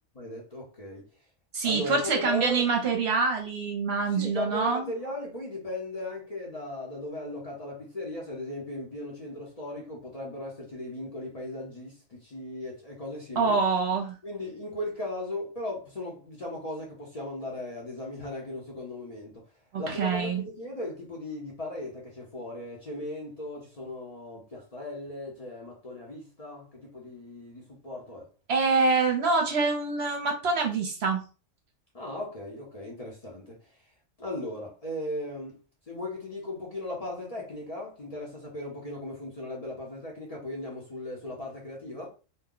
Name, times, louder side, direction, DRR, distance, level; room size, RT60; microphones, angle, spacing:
voice 1, 0.2-1.1 1.6-2.7 4.1-13.6 14.2-19.4 19.8-28.3 31.9-33.8 34.2-35.6 35.9-42.1, left 1 dB, 35° left, 0.7 m, -37 dB
voice 2, 1.5-4.9 13.4-14.2 19.7-20.4 28.5-31.2, right 4 dB, 60° right, 0.9 m, -25 dB
2.7 x 2.2 x 3.7 m
omnidirectional pair, 1.3 m